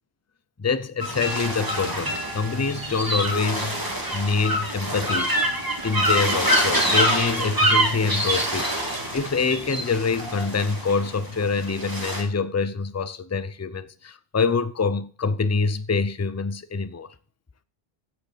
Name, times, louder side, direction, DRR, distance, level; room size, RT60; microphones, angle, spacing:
voice 1, 0.6-5.3 5.8-17.1, left 4 dB, 20° left, 0.4 m, -26 dB
sound 1, 1.0-12.2, right 1 dB, 20° right, 2.1 m, -25 dB
8.5 x 7.9 x 6.7 m
omnidirectional pair, 1.0 m